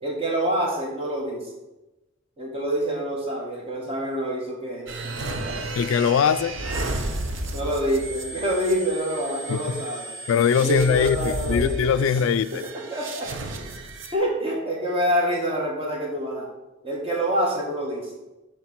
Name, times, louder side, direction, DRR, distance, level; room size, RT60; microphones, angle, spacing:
voice 1, 0.0-1.4 2.4-4.9 5.2-5.6 7.5-10.1 10.6-11.8 12.9-13.3 14.1-16.5 16.8-18.1, equal, 30° right, -2 dB, 1.8 m, -26 dB
sound 1, 4.9-14.1, right 1 dB, 65° right, 0.8 m, -33 dB
voice 2, 5.8-6.6 9.5-9.9 10.3-12.6, left 7 dB, 75° left, 14 dB, 0.3 m, -22 dB
7.2 x 4.2 x 5.8 m, 1.0 s
head